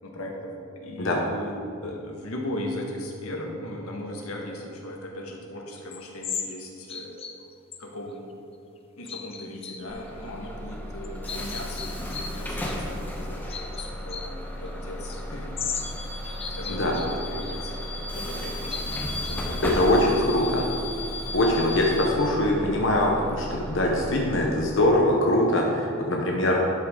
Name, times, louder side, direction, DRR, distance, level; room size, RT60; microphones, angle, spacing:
voice 1, 0.0-7.1 7.4-7.5 7.8-8.2 8.9-15.5 16.5-17.8 18.1-20.7, left 1 dB, 85° left, 0 dB, 1.6 m, -38 dB
sound 1, 5.8-6.5 6.9-7.4 7.7-7.8 9.0-9.8 10.5-10.6 11.0-12.3 12.6-12.8 13.5-14.3 15.1-15.2 15.6-15.9 16.3-17.2 17.4-17.5 18.2-19.8, left 6 dB, 25° left, 0.6 m, -36 dB
Bus / Alarm, 9.9-24.5, left 1 dB, 10° left, 1.1 m, -34 dB
voice 2, 19.6-20.7 21.3-26.7, left 1 dB, 60° left, -1 dB, 0.9 m, -22 dB
12.0 x 8.1 x 3.8 m, 2.6 s
head